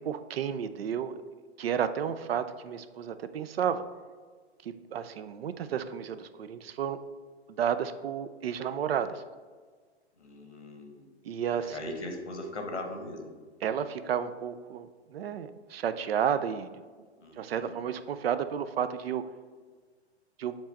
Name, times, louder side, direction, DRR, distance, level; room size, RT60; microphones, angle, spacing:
voice 1, 0.0-1.2 1.6-3.8 4.6-7.0 7.5-9.2 11.2-11.9 13.6-16.7 17.4-19.2 20.4-20.6, right 8 dB, 60° right, 12 dB, 0.5 m, -32 dB
voice 2, 10.2-11.1 11.5-13.3 17.2-17.7, left 1 dB, 85° left, 3 dB, 1.2 m, -40 dB
7.2 x 3.0 x 5.3 m, 1.5 s
figure-of-eight pair, 110°, 34 cm